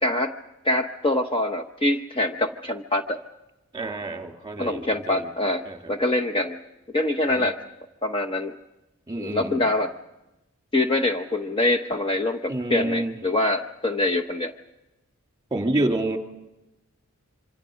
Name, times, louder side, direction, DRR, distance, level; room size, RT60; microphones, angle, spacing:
voice 1, 0.0-0.3 0.6-3.2 4.6-6.6 6.9-7.6 8.0-8.5 9.2-9.9 10.7-14.5, left 2 dB, 25° left, 3 dB, 0.9 m, -24 dB
voice 2, 3.7-5.3 5.6-5.8 7.3-7.5 9.1-9.6 12.5-13.2 15.5-16.2, right 2 dB, 15° right, 4 dB, 2.6 m, -28 dB
26.5 x 26.0 x 5.1 m, 0.97 s
head